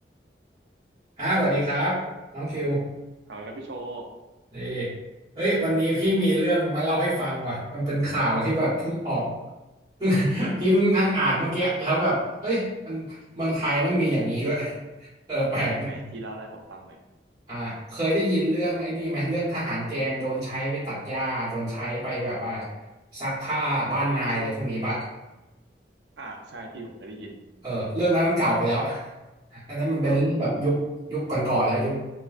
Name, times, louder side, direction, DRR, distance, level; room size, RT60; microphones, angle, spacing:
voice 1, 1.2-2.0 2.3-2.8 4.5-4.9 5.3-9.3 10.0-14.8 15.3-15.9 17.5-22.7 23.1-25.0 27.6-29.1 29.5-30.8 31.1-31.9, right 1 dB, 20° right, -11 dB, 1.2 m, -25 dB
voice 2, 3.3-4.0 15.7-17.0 26.2-27.4 30.0-30.2, right 2 dB, 80° right, 2 dB, 0.5 m, -39 dB
4.4 x 2.2 x 2.5 m, 1.1 s
head